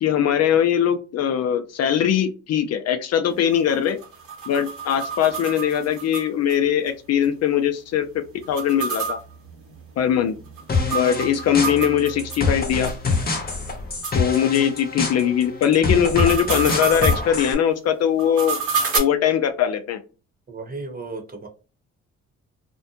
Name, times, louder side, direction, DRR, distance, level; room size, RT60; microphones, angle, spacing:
voice 1, 0.0-4.0 4.5-9.2 10.0-10.4 10.9-12.9 14.1-18.6 18.9-20.0, left 9 dB, 60° left, 8 dB, 0.4 m, -21 dB
sound 1, 3.3-6.6 6.9-7.0 7.2-7.3 8.4-12.4 12.8-12.9 13.5-13.6 14.0-14.2 15.9-17.2 18.2-19.0, right 5 dB, 85° right, 1.1 m, -29 dB
sound 2, 10.7-17.5, left 4 dB, 30° left, 0.8 m, -25 dB
voice 2, 20.5-21.5, right 3 dB, 30° right, 3 dB, 0.9 m, -34 dB
2.5 x 2.1 x 2.7 m, 0.34 s
cardioid pair, 90°, 30 cm